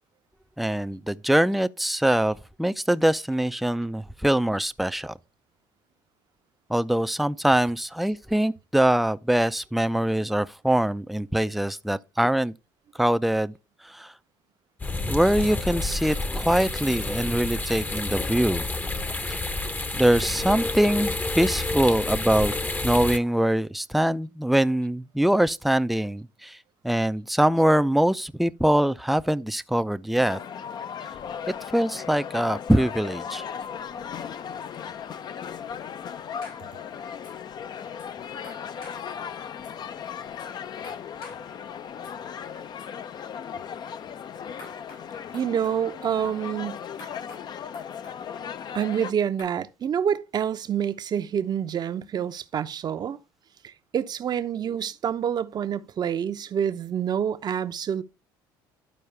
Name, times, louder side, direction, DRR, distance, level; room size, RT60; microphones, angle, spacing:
voice 1, 0.6-5.1 6.7-12.5 12.9-13.5 13.8-14.1 15.0-18.7 19.3-19.4 19.9-22.5 22.8-26.6 26.8-30.4 31.7-33.4, right 1 dB, ahead, 0.4 m, -23 dB
sound 1, 14.8-23.2, left 2 dB, 15° left, 0.8 m, -29 dB
sound 2, 30.2-49.1, left 8 dB, 45° left, 0.6 m, -37 dB
sound 3, 36.4-36.6 37.2-37.3 38.0-38.1 38.4-39.0 39.6-39.7 40.4-40.5 40.8-41.4 42.0-42.1 42.8-42.9 44.6-45.0 45.3-45.8 47.0-47.4 47.7-48.2 49.4-49.5, left 3 dB, 80° left, 5.4 m, -46 dB
voice 2, 45.3-46.8 48.7-53.2 53.6-58.0, right 8 dB, 45° right, 0.7 m, -27 dB
12.5 x 4.6 x 3.3 m
supercardioid pair, 75°, 10 cm